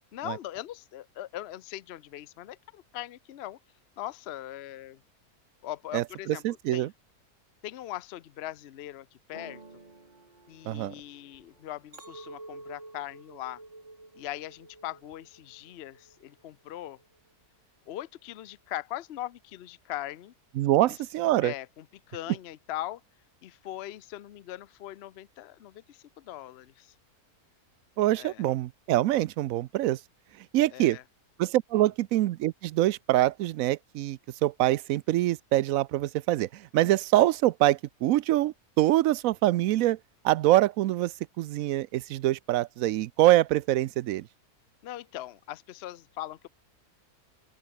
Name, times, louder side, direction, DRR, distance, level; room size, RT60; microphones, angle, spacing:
voice 1, 0.1-3.6 4.0-5.0 5.6-6.9 7.6-9.6 10.5-13.6 14.2-17.0 17.9-20.3 20.8-21.0 21.4-23.0 23.4-26.9 28.2-28.4 30.7-31.0 31.7-31.9 44.8-46.5, left 13 dB, 55° left, 0.7 m, -40 dB
voice 2, 5.9-6.9 10.7-10.9 20.6-21.5 28.0-30.0 30.5-31.0 31.4-40.0 40.2-44.3, right 15 dB, 70° right, 0.9 m, -25 dB
sound 1, 9.3-13.2 13.7-14.3 14.6-15.3, right 3 dB, 30° right, 2.1 m, -55 dB
Chink clink, 11.9-16.3 16.7-17.2, right 2 dB, 50° right, 5.5 m, -49 dB
open air
omnidirectional pair, 1.6 m